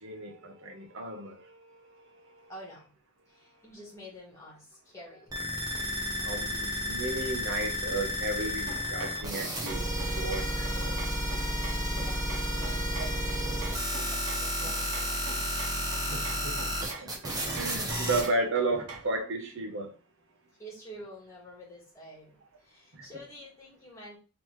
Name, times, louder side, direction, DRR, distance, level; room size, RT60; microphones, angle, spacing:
voice 1, 0.0-2.5 3.4-3.6 6.2-11.0 16.1-19.9 22.9-23.1, right 2 dB, 55° right, 0.8 m, -34 dB
voice 2, 2.5-2.9 3.3-5.4 11.9-13.6 13.9-15.2 20.6-24.2, equal, 15° left, 1.6 m, -49 dB
sound 1, 5.3-18.3, equal, 15° right, 0.8 m, -32 dB
sound 2, 8.7-19.2, right 3 dB, 85° right, 1.0 m, -45 dB
3.8 x 3.0 x 3.1 m
head